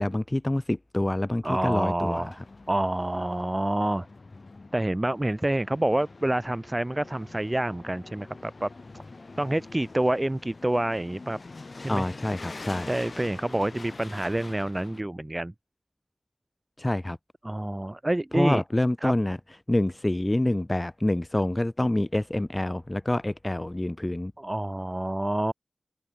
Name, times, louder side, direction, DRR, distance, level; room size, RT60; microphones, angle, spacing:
voice 1, 0.0-2.4 11.9-12.9 16.8-17.2 18.3-19.4 19.7-24.3, left 1 dB, 25° left, 2.5 m, -27 dB
voice 2, 1.4-2.4 2.7-4.1 4.7-8.7 9.4-11.4 11.8-12.1 12.9-15.5 17.4-18.6 19.0-19.1 24.4-25.5, right 1 dB, 25° right, 3.4 m, -27 dB
sound 1, 2.0-15.0, left 3 dB, 55° left, 7.4 m, -45 dB
cardioid pair, 50°, 0 cm